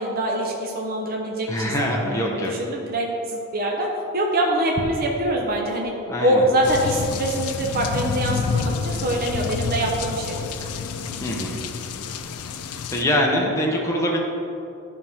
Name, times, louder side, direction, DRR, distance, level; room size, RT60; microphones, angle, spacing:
voice 1, 0.0-5.9 6.2-10.6, right 1 dB, 45° right, -1 dB, 0.8 m, -24 dB
voice 2, 1.5-2.5 6.1-6.5 11.2-11.6 12.9-14.2, equal, 15° left, -1 dB, 0.9 m, -23 dB
sound 1, 6.6-13.0, left 5 dB, 90° left, 0.5 m, -29 dB
11.5 x 5.3 x 3.5 m, 2.8 s
head